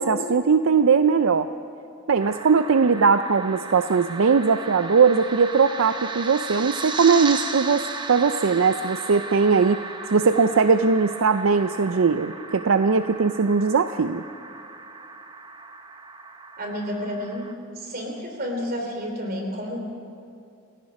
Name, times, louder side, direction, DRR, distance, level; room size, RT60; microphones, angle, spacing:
voice 1, 0.0-1.5 2.1-9.8 10.1-14.2, right 5 dB, 70° right, 10 dB, 0.5 m, -20 dB
sound 1, 2.2-17.5, right 3 dB, 20° right, 0.9 m, -36 dB
voice 2, 16.6-17.5 17.7-19.8, equal, 45° right, 2 dB, 3.3 m, -30 dB
29.0 x 16.5 x 5.3 m, 2.6 s
head